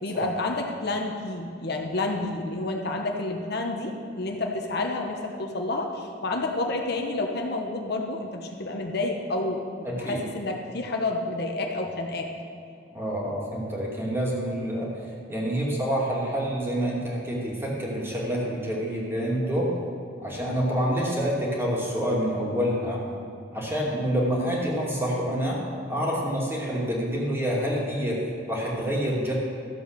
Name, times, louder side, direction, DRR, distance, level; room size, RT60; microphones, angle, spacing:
voice 1, 0.0-12.3, left 2 dB, 55° left, 2 dB, 1.1 m, -29 dB
voice 2, 9.8-10.2 12.9-14.9 15.3-19.7 20.2-23.0 23.5-25.6 25.9-29.3, equal, 15° right, -4 dB, 2.6 m, -27 dB
13.5 x 7.9 x 6.8 m, 2.5 s
head